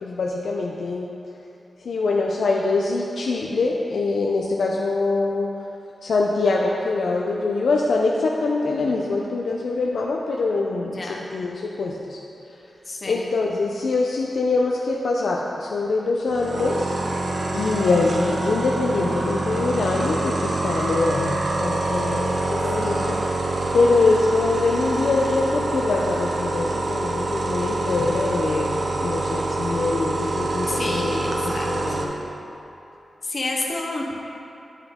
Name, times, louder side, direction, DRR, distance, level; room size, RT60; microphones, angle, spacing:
voice 1, 0.0-1.1 1.8-5.5 6.0-12.2 13.0-17.0 17.5-32.1, left 3 dB, 85° left, -2 dB, 0.4 m, -24 dB
voice 2, 10.8-11.4 12.8-13.3 22.8-23.2 30.7-32.0 33.2-34.1, left 2 dB, 35° left, -1 dB, 0.6 m, -30 dB
sound 1, 16.3-32.0, right 2 dB, 45° right, 0.6 m, -26 dB
9.1 x 5.4 x 3.6 m, 2.9 s
wide cardioid pair, 180°, 0 cm